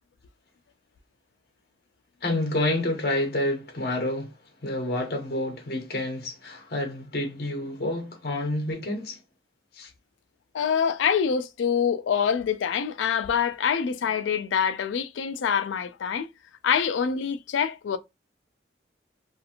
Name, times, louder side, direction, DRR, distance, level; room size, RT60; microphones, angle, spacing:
voice 1, 2.2-4.3 4.6-9.2 9.7-9.9, left 1 dB, 55° left, 0.7 m, -28 dB
voice 2, 10.5-16.3 16.6-18.0, left 7 dB, 90° left, 0.4 m, -25 dB
2.8 x 2.5 x 2.5 m
head